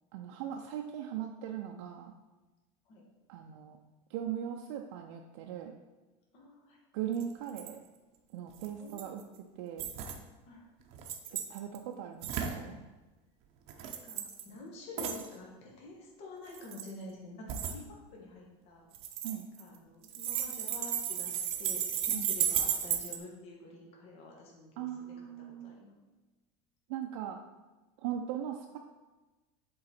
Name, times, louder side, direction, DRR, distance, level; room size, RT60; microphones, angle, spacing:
voice 1, 0.1-2.1 3.3-3.8 4.1-5.8 6.9-7.8 8.3-9.2 9.6-9.9 11.3-12.8 19.2-19.5 22.1-22.3 24.8-25.8 26.9-27.4 28.0-28.8, right 10 dB, 75° right, 2 dB, 0.5 m, -39 dB
voice 2, 6.3-6.8 8.8-9.1 10.4-10.7 14.0-17.8 18.1-18.9 19.6-25.9, left 2 dB, 40° left, -2 dB, 1.3 m, -48 dB
sound 1, 7.2-7.3 7.5-7.7 8.6-9.2 9.8-10.2 10.9-11.8 12.2-12.6 13.7-14.4 15.0-15.3 16.5-16.9 17.5-17.8 18.9-19.8 20.0-23.2, right 9 dB, 40° right, 0.7 m, -34 dB
7.7 x 3.9 x 4.2 m, 1.2 s
cardioid pair, 165°, 15 cm